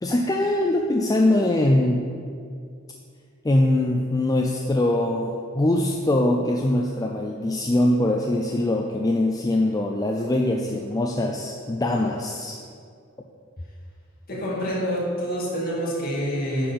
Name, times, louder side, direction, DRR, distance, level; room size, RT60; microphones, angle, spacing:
voice 1, 0.0-2.0 3.4-12.6, left 1 dB, 20° left, 1 dB, 0.4 m, -22 dB
voice 2, 14.3-16.7, equal, 45° left, -5 dB, 2.2 m, -27 dB
9.9 x 4.3 x 5.8 m, 2.3 s
head